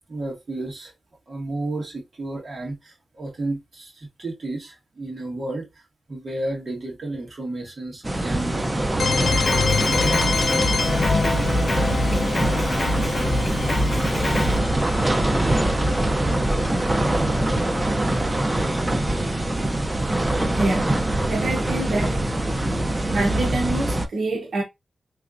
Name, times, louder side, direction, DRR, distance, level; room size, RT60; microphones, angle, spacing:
voice 1, 0.1-0.9 1.3-5.7 6.1-9.6 10.6-10.7, right 2 dB, 40° right, 1.6 m, -32 dB
sound 1, 8.0-24.1, right 1 dB, 15° right, 0.4 m, -23 dB
sound 2, 9.0-18.7, left 4 dB, 50° left, 0.4 m, -27 dB
Drum kit, 9.2-14.6, left 1 dB, 35° left, 1.4 m, -26 dB
voice 2, 20.5-22.2 23.1-24.6, right 2 dB, 60° right, 0.9 m, -26 dB
3.7 x 3.1 x 2.5 m
wide cardioid pair, 180°, 0 cm